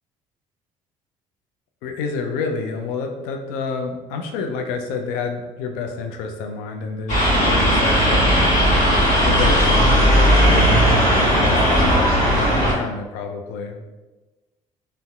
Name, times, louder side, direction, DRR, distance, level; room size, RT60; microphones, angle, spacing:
voice 1, 1.8-13.8, left 4 dB, 70° left, 4 dB, 0.4 m, -29 dB
sound 1, 7.1-12.7, equal, 50° left, 1.4 m, -16 dB
3.9 x 2.1 x 2.3 m, 1.2 s
hypercardioid pair, 55°, 16 cm